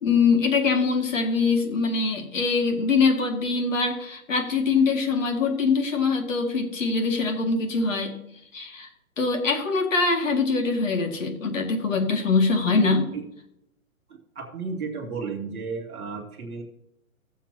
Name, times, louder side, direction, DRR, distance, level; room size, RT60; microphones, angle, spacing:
voice 1, 0.0-8.1 8.5-8.9 9.2-13.1, left 4 dB, 60° left, 3 dB, 2.2 m, -23 dB
voice 2, 14.3-16.6, right 4 dB, 5° right, -11 dB, 0.7 m, -33 dB
17.0 x 7.3 x 2.9 m, 0.80 s
hypercardioid pair, 175°, 43 cm